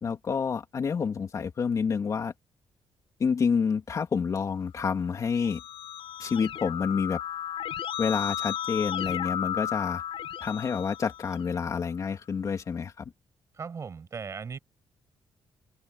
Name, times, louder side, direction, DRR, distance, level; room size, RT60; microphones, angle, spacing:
voice 1, 0.0-2.3 3.2-5.6 6.2-7.2 8.0-10.0 10.4-13.1, left 6 dB, 35° left, 3.3 m, -28 dB
Keyboard (musical), 5.1-11.7, left 10 dB, 70° left, 6.3 m, -34 dB
voice 2, 13.5-14.6, right 5 dB, 30° right, 6.7 m, -37 dB
cardioid pair, 180°, 10 cm